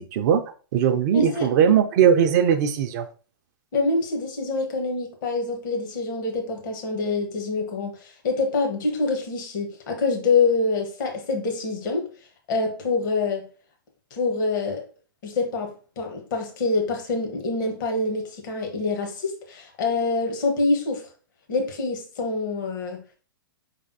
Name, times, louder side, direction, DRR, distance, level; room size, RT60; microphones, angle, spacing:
voice 1, 0.0-3.1, right 8 dB, 45° right, 0.4 m, -20 dB
voice 2, 1.1-1.5 3.7-12.1 12.5-13.5 14.1-14.8 15.2-21.1 21.5-23.0, left 3 dB, 55° left, 1.2 m, -26 dB
4.9 x 3.3 x 2.7 m
figure-of-eight pair, 110°, 13 cm